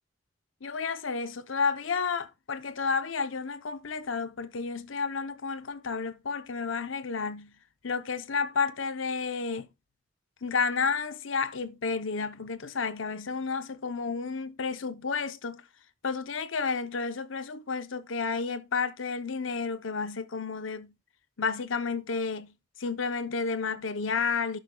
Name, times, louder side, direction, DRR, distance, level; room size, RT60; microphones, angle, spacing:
voice 1, 0.6-7.5 7.8-9.7 10.4-15.6 16.0-20.9 21.4-24.6, left 5 dB, 85° left, 0.8 m, -31 dB
11.5 x 8.4 x 2.3 m
head